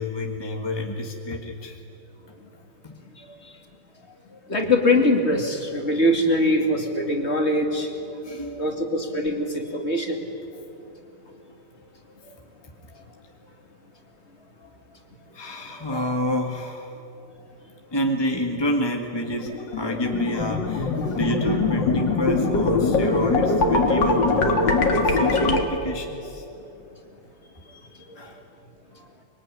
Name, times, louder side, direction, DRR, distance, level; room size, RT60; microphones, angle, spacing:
voice 1, 0.0-1.8 2.3-2.4 2.8-3.4 4.1-4.4 8.2-8.7 12.2-12.4 12.9-13.0 14.6-14.7 15.3-17.1 17.9-26.7 28.1-28.4 29.0-29.1, left 1 dB, 15° left, 2 dB, 1.5 m, -29 dB
voice 2, 4.5-7.9 8.6-10.2, left 1 dB, 35° left, 3 dB, 2.8 m, -22 dB
sound 1, 19.3-25.6, left 3 dB, 65° left, 2.7 m, -22 dB
24.5 x 23.0 x 9.9 m, 2.9 s
omnidirectional pair, 2.1 m